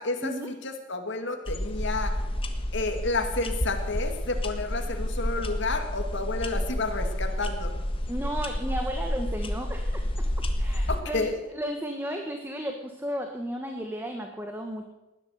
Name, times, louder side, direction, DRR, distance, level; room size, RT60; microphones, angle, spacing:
voice 1, 0.0-0.3 0.6-2.1 2.7-7.7 10.9-11.4, left 3 dB, 65° left, 5 dB, 2.3 m, -30 dB
sound 1, 1.5-11.0, left 1 dB, 30° left, 1.5 m, -30 dB
voice 2, 8.1-10.0 10.6-11.3 11.5-14.8, equal, 10° right, 4 dB, 1.3 m, -34 dB
19.5 x 11.0 x 6.5 m, 1.0 s
head